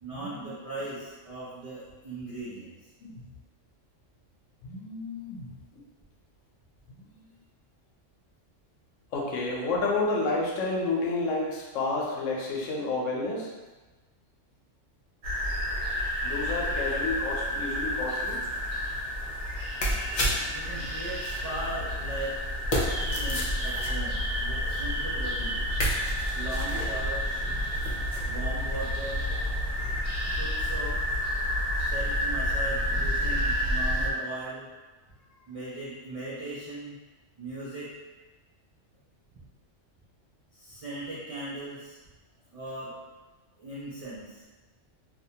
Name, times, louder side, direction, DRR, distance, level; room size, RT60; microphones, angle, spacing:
voice 1, 0.0-2.7 20.4-22.4 22.7-25.8 26.3-27.4 28.3-29.3 30.4-31.2 31.7-34.7 35.5-37.0 37.4-37.9 40.5-42.0 42.5-42.9 43.6-44.5, right 2 dB, 55° right, -8 dB, 0.4 m, -38 dB
voice 2, 4.6-5.5 6.9-7.3 9.1-13.5 16.2-18.4 20.8-20.9, left 3 dB, 90° left, -2 dB, 1.0 m, -30 dB
sound 1, 15.2-34.1, equal, 75° right, 0.9 m, -30 dB
sound 2, 18.0-28.4 28.7-30.0, equal, 60° left, 0.5 m, -36 dB
2.6 x 2.1 x 2.7 m, 1.2 s
omnidirectional pair, 1.3 m